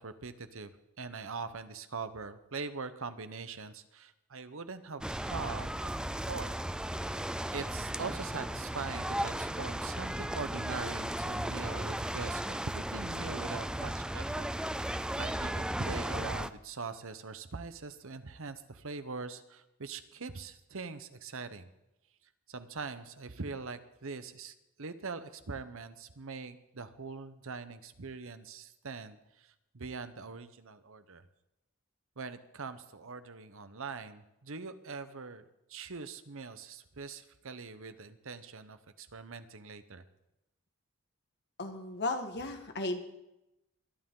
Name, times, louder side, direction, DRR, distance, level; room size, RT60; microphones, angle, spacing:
voice 1, 0.0-6.6 7.5-14.5 14.7-21.7 22.5-31.2 32.2-40.0, right 4 dB, 70° right, 11 dB, 1.0 m, -42 dB
sound 1, 5.0-16.5, right 1 dB, 5° right, 0.4 m, -35 dB
voice 2, 41.6-43.0, left 2 dB, 50° left, 5 dB, 1.7 m, -35 dB
21.5 x 11.5 x 3.8 m, 0.90 s
head